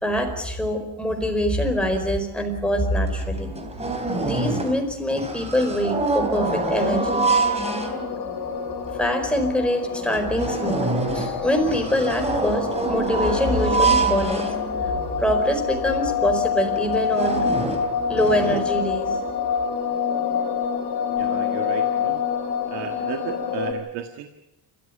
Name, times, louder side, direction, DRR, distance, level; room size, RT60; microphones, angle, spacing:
voice 1, 0.0-3.5 4.2-7.2 9.0-14.5 15.2-17.4 18.1-19.2, equal, ahead, 3 dB, 4.7 m, -24 dB
sound 1, 2.8-2.9 3.2-4.9 5.1-8.3 8.9-9.0 9.4-9.5 9.9-15.1 15.7-15.8 16.1-16.3 16.8-18.6, right 3 dB, 15° right, 3.3 m, -26 dB
sound 2, 6.4-23.7, left 7 dB, 60° left, 4.3 m, -27 dB
voice 2, 21.2-22.3 22.7-24.3, right 10 dB, 85° right, 6 dB, 1.7 m, -34 dB
29.0 x 14.0 x 9.9 m, 0.96 s
cardioid pair, 140°, 42 cm